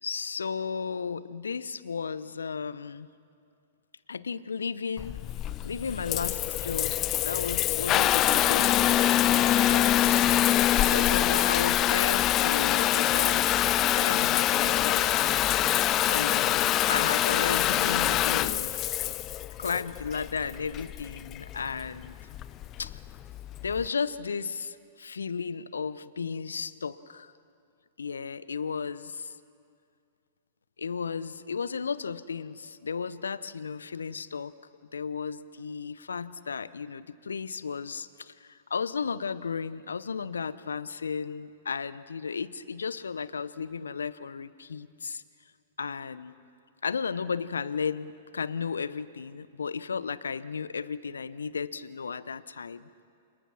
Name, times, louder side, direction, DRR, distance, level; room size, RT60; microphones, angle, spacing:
voice 1, 0.0-3.1 4.1-5.2 5.6-7.0 7.2-9.1 9.5-10.5 10.9-13.6 13.9-15.2 16.1-18.8 19.6-22.2 22.8-23.0 23.6-27.3 28.0-29.3 30.8-34.5 34.9-45.2 45.8-46.4 46.8-53.0, left 5 dB, 75° left, 17 dB, 0.8 m, -34 dB
Water tap faucet / Bathtub (filling or washing) / Trickle dribble, 5.0-23.9, left 13 dB, 30° left, 0.7 m, -25 dB
28.5 x 28.5 x 6.2 m, 2.3 s
figure-of-eight pair, 105°, 0 cm